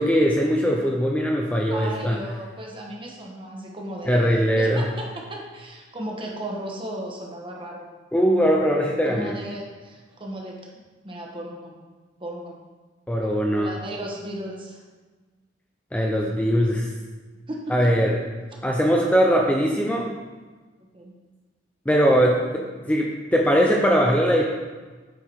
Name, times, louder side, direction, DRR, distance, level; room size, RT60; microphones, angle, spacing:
voice 1, 0.0-2.2 4.1-4.9 8.1-9.4 13.1-13.7 15.9-16.9 17.7-18.2 18.6-20.1 21.9-22.4 22.8-24.4, equal, 10° left, -1 dB, 0.6 m, -20 dB
voice 2, 1.7-7.9 9.0-10.6 11.0-11.7 12.2-12.5 13.6-14.8 17.5-17.7 20.9-21.1, right 1 dB, 30° right, -1 dB, 1.3 m, -35 dB
8.6 x 4.7 x 4.5 m, 1.3 s
head